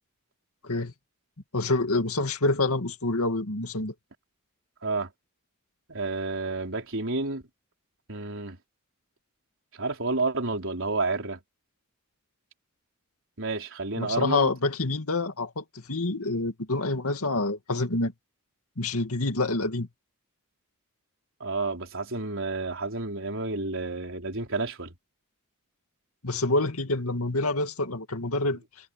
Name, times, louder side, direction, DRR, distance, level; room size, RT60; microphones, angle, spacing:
voice 1, 1.5-3.9 14.0-18.1 18.8-19.9 26.2-28.6, left 2 dB, 85° left, 2.3 m, -27 dB
voice 2, 5.9-7.4 8.1-8.6 9.8-11.4 13.4-14.5 21.4-24.9, right 3 dB, 65° right, 4.3 m, -30 dB
head